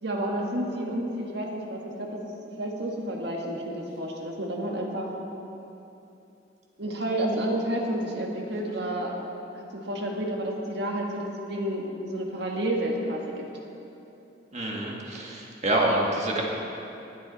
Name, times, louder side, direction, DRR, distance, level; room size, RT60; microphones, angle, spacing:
voice 1, 0.0-5.1 6.8-9.1 9.5-13.4, right 1 dB, 65° right, 0 dB, 1.7 m, -30 dB
voice 2, 14.5-16.4, right 1 dB, 40° right, -2 dB, 1.7 m, -26 dB
20.0 x 8.5 x 4.1 m, 2.9 s
head